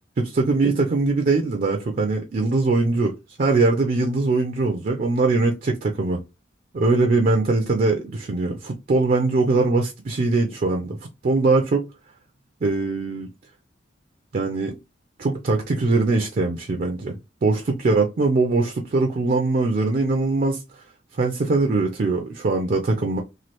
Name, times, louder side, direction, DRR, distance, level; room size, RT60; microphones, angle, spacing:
voice 1, 0.2-3.1 3.4-6.2 6.7-11.0 11.2-11.9 12.6-13.3 14.3-14.8 15.2-17.2 17.4-20.6 21.2-23.2, right 3 dB, 45° right, 0.4 m, -21 dB
3.1 x 2.3 x 2.9 m
head